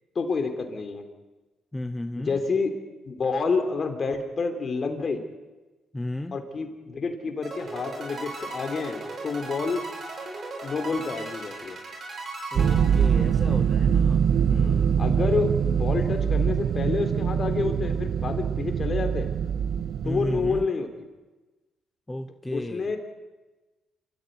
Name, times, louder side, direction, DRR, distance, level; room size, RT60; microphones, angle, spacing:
voice 1, 0.2-1.1 2.2-2.7 3.1-5.2 6.3-9.8 10.6-11.8 14.5-19.3 20.0-21.1 22.5-23.0, left 4 dB, 40° left, 5 dB, 4.0 m, -28 dB
voice 2, 1.7-2.4 5.9-6.4 12.5-14.9 20.0-20.7 22.1-22.9, left 1 dB, 15° left, 8 dB, 1.0 m, -34 dB
sound 1, 7.4-13.7, right 2 dB, 45° right, 7.1 m, -37 dB
sound 2, 12.6-20.7, right 8 dB, 60° right, 0.8 m, -24 dB
27.5 x 14.5 x 9.7 m, 1.2 s
cardioid pair, 90°, 0 cm